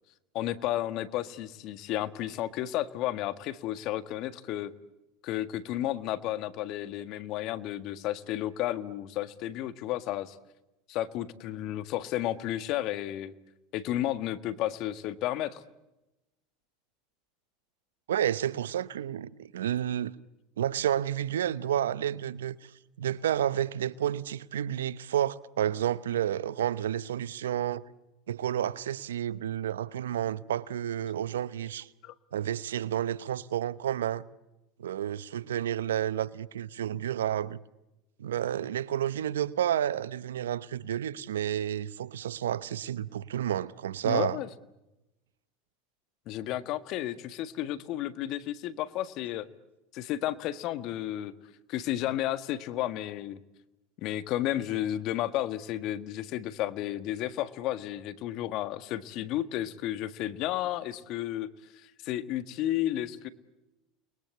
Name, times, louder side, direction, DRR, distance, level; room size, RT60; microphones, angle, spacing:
voice 1, 0.3-4.7 5.2-10.4 10.9-13.3 13.7-15.6 32.0-32.1 44.0-44.5 46.3-49.5 49.9-51.3 51.7-53.4 54.0-63.3, left 13 dB, 55° left, 1.6 m, -32 dB
voice 2, 18.1-20.1 20.6-22.7 23.0-27.8 28.3-31.9 32.3-34.3 34.8-37.6 38.2-44.4, right 10 dB, 85° right, 0.9 m, -30 dB
30.0 x 21.5 x 8.3 m
hypercardioid pair, 85°, 0 cm